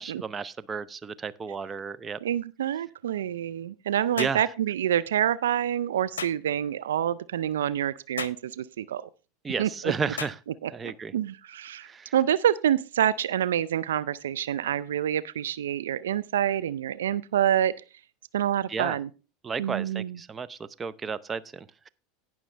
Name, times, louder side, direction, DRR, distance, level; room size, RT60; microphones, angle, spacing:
voice 1, 0.0-2.2 4.2-4.4 9.4-10.4 10.7-11.1 11.8-12.1 18.7-19.0 19.4-21.9, right 5 dB, 25° right, 0.7 m, -33 dB
voice 2, 2.2-9.1 9.6-9.9 10.6-11.9 12.1-17.8 18.3-19.1 19.6-20.2, right 10 dB, 80° right, 0.4 m, -27 dB
sound 1, 4.2-4.4 6.2-6.4 8.2-8.4 10.2-10.4, left 7 dB, 90° left, 0.6 m, -35 dB
18.0 x 6.2 x 3.3 m
hypercardioid pair, 90°, 0 cm